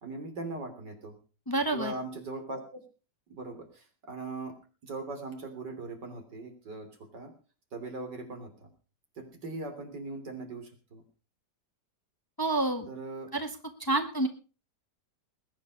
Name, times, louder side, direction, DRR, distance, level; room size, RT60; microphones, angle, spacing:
voice 1, 0.0-1.2 1.7-2.8 3.3-4.5 4.8-6.9 7.1-7.3 7.7-8.7 9.2-11.0 12.9-13.3, right 3 dB, 70° right, 5 dB, 3.8 m, -40 dB
voice 2, 1.5-1.9 12.4-12.9 13.3-13.5 13.8-14.3, right 2 dB, 15° left, 6 dB, 1.5 m, -28 dB
20.5 x 9.6 x 5.3 m, 0.36 s
omnidirectional pair, 1.9 m